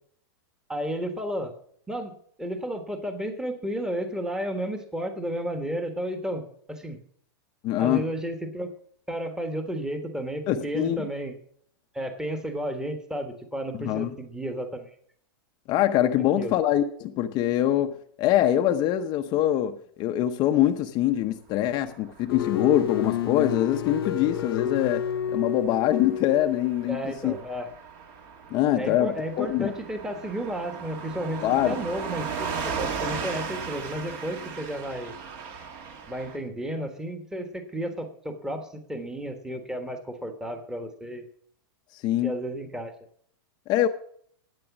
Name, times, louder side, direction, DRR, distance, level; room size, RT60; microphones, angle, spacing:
voice 1, 0.7-1.5 1.9-2.1 2.4-6.4 6.7-7.0 7.8-8.7 9.1-11.3 11.9-14.9 16.4-16.5 26.9-27.7 28.8-35.1 36.1-41.3 42.2-42.9, equal, 5° right, 6 dB, 1.4 m, -32 dB
voice 2, 7.6-8.0 10.5-11.1 13.8-14.1 15.7-17.9 18.2-25.0 25.3-27.3 28.5-29.7 31.4-31.8 41.9-42.4 43.7-43.9, left 12 dB, 35° left, 6 dB, 0.7 m, -24 dB
Car passing by / Truck, 22.0-36.4, right 5 dB, 45° right, 1.8 m, -37 dB
sound 1, 22.3-26.9, left 9 dB, 90° left, 0.5 m, -30 dB
12.0 x 9.1 x 6.0 m, 0.63 s
supercardioid pair, 140°, 12 cm